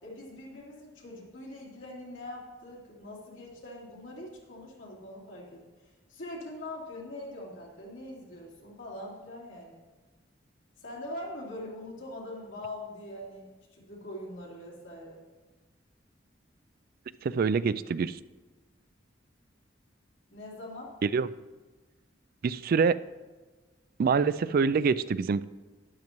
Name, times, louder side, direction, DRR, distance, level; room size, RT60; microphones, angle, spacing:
voice 1, 0.0-9.8 10.8-15.2 20.3-21.0, left 1 dB, 80° left, -4 dB, 3.4 m, -43 dB
voice 2, 17.2-18.2 21.0-21.3 22.4-23.0 24.0-25.4, right 5 dB, 50° right, 15 dB, 0.3 m, -25 dB
12.0 x 10.5 x 3.1 m, 1.2 s
head